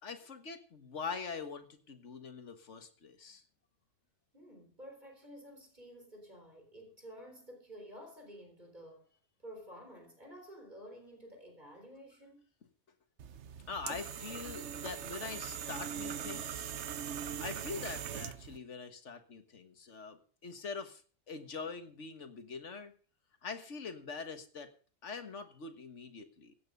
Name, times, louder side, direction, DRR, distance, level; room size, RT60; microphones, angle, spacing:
voice 1, 0.0-3.4 13.7-16.7 17.4-21.0 21.3-22.9 23.4-24.7 25.0-26.5, left 5 dB, 80° left, 1.9 m, -43 dB
voice 2, 4.3-9.1 9.4-12.5, equal, 40° right, 4.0 m, -51 dB
sound 1, 13.2-18.6, right 8 dB, 70° right, 1.1 m, -41 dB
16.5 x 9.0 x 5.4 m
omnidirectional pair, 1.2 m